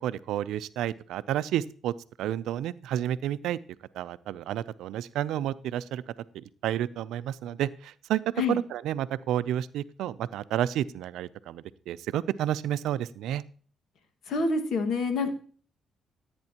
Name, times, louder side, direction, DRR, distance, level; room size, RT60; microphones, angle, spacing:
voice 1, 0.0-3.6 3.9-6.0 6.3-8.2 8.5-13.4, right 11 dB, 85° right, 16 dB, 0.4 m, -31 dB
voice 2, 14.3-15.3, left 3 dB, 70° left, 7 dB, 1.7 m, -27 dB
15.0 x 8.8 x 2.9 m, 0.44 s
cardioid pair, 90°, 0 cm